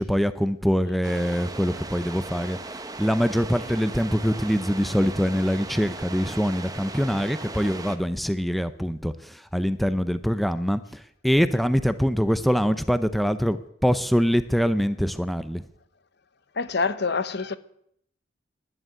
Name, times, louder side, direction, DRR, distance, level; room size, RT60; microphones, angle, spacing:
voice 1, 0.0-2.6 3.0-15.6, equal, ahead, 0.6 m, -24 dB
sound 1, 1.0-8.0, right 3 dB, 20° right, 1.0 m, -38 dB
voice 2, 16.6-17.6, left 4 dB, 60° left, 0.9 m, -26 dB
11.0 x 11.0 x 9.2 m
head